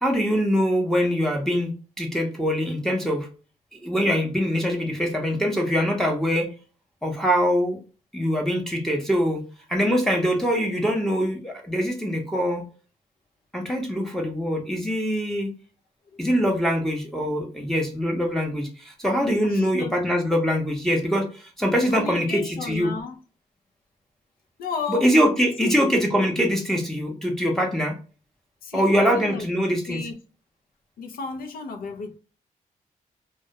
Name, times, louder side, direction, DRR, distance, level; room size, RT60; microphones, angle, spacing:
voice 1, 0.0-1.7 2.0-3.3 3.7-6.5 7.0-7.8 8.1-9.4 9.7-12.6 13.5-15.5 16.2-22.9 24.9-28.0 28.7-30.0, equal, 5° left, 0.6 m, -23 dB
voice 2, 16.5-16.9 19.4-19.9 21.9-23.2 24.6-25.1 25.6-25.8 28.6-29.5 29.9-30.2 31.0-32.2, left 5 dB, 90° left, 0.4 m, -33 dB
2.2 x 2.1 x 2.7 m
cardioid pair, 80°, 15 cm